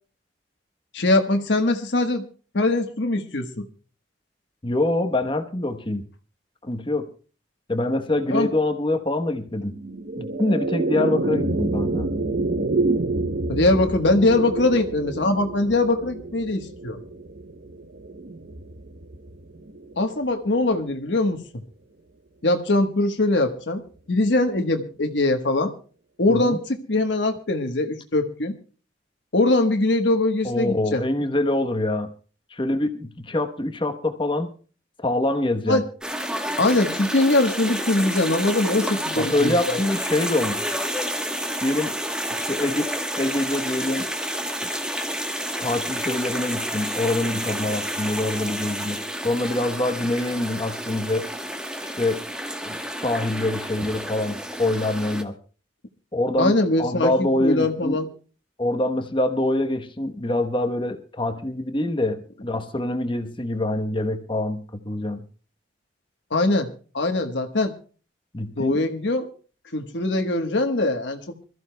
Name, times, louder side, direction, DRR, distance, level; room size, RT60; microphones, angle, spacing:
voice 1, 0.9-2.3 2.5-3.7 8.3-8.5 13.5-17.0 20.0-21.4 22.4-23.8 24.1-25.7 26.2-28.6 29.3-31.0 35.7-35.8 36.6-39.8 56.4-58.1 66.3-67.7 68.6-69.3 69.7-71.4, left 2 dB, 75° left, 5 dB, 1.3 m, -22 dB
voice 2, 4.6-6.0 6.6-7.1 7.7-9.7 10.2-12.1 26.3-26.6 30.4-32.1 32.5-34.5 35.0-35.8 39.2-40.6 41.6-41.9 42.4-44.1 44.6-44.7 45.6-49.0 49.2-51.3 52.0-52.2 52.6-52.8 53.0-55.3 56.1-58.0 58.6-65.3 68.3-68.8, left 1 dB, 25° left, 7 dB, 1.1 m, -25 dB
sound 1, 9.7-20.2, right 2 dB, 60° right, 0.8 m, -28 dB
sound 2, 36.0-55.2, equal, 5° right, 1.2 m, -30 dB
26.0 x 14.0 x 2.3 m, 0.38 s
head